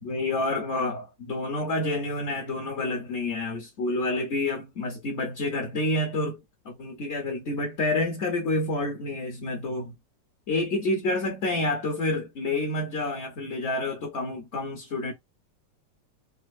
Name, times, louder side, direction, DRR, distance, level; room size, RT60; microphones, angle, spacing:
voice 1, 0.0-6.4 6.6-9.9 10.5-15.1, left 2 dB, 55° left, 0.7 m, -28 dB
4.2 x 2.4 x 2.4 m
omnidirectional pair, 2.2 m